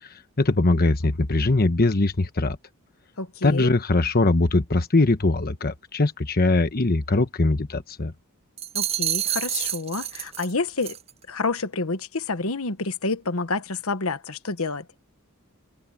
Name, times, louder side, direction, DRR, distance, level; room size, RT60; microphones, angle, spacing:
voice 1, 0.0-2.6 3.4-8.1, left 2 dB, 45° left, 1.1 m, -21 dB
voice 2, 3.2-3.7 8.7-11.0 11.3-14.8, left 3 dB, 70° left, 1.3 m, -28 dB
sound 1, 8.6-10.5 10.8-11.1, right 11 dB, 30° right, 0.5 m, -28 dB
open air
head